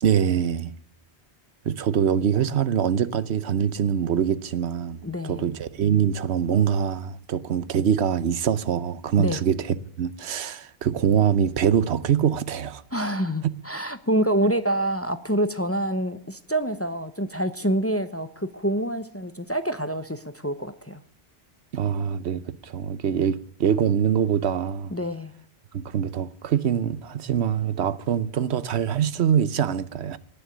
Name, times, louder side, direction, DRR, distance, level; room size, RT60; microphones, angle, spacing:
voice 1, 0.0-0.7 1.6-12.8 21.7-24.9 25.7-30.2, right 8 dB, 80° right, 1.0 m, -24 dB
voice 2, 5.0-5.5 9.2-9.4 12.9-21.0 24.9-25.3, right 1 dB, 15° left, 0.7 m, -26 dB
18.5 x 6.9 x 8.4 m
omnidirectional pair, 1.1 m